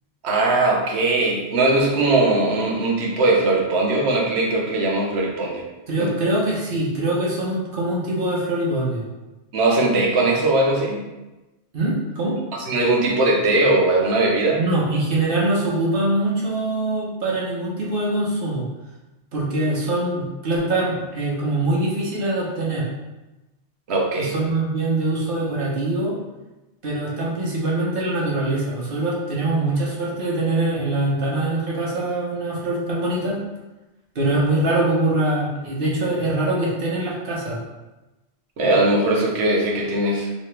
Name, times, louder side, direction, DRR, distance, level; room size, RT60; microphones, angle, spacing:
voice 1, 0.2-5.6 6.0-6.1 9.5-11.0 12.7-14.6 23.9-24.3 38.6-40.3, right 2 dB, 80° right, -1 dB, 1.0 m, -20 dB
voice 2, 5.9-9.1 11.7-12.4 14.5-18.7 19.3-22.9 24.2-26.2 26.8-33.4 34.1-37.6, right 2 dB, 60° right, -5 dB, 1.1 m, -23 dB
3.1 x 2.9 x 3.2 m, 1.1 s
omnidirectional pair, 1.1 m